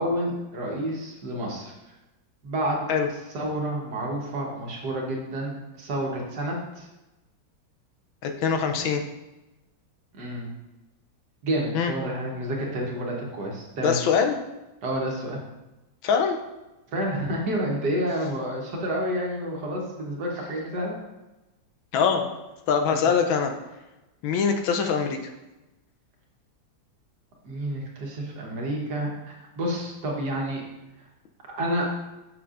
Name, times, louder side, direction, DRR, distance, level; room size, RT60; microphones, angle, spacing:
voice 1, 0.0-1.7 2.4-2.8 3.3-6.9 10.1-10.6 11.4-14.0 14.8-15.4 16.9-21.0 22.9-23.1 27.4-30.6 31.6-31.8, right 1 dB, 60° right, -1 dB, 1.6 m, -29 dB
voice 2, 8.2-9.0 11.7-11.9 13.8-14.4 16.0-16.4 21.9-22.3 22.7-23.5 24.2-25.2, left 6 dB, 80° left, 5 dB, 1.4 m, -23 dB
7.9 x 6.0 x 2.5 m, 1.0 s
omnidirectional pair, 2.2 m